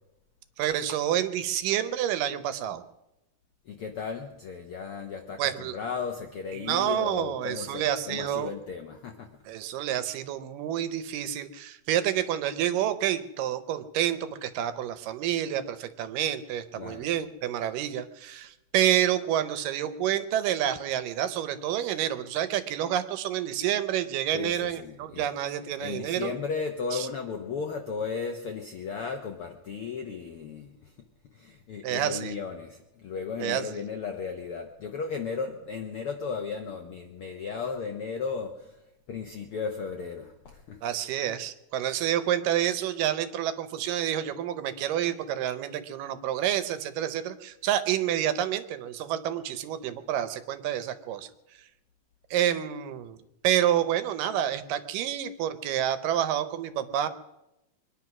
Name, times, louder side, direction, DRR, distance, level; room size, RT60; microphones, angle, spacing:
voice 1, 0.6-2.8 5.4-5.8 6.5-8.5 9.5-26.3 26.9-27.1 31.8-32.3 33.4-33.8 40.8-51.3 52.3-53.2 53.4-57.1, right 11 dB, 80° right, 12 dB, 2.5 m, -28 dB
voice 2, 3.7-5.4 5.7-9.3 16.8-17.1 24.3-25.3 25.8-30.9 31.3-38.8 39.1-40.8, left 5 dB, 75° left, 4 dB, 1.3 m, -35 dB
23.0 x 10.0 x 6.0 m, 0.94 s
omnidirectional pair, 3.8 m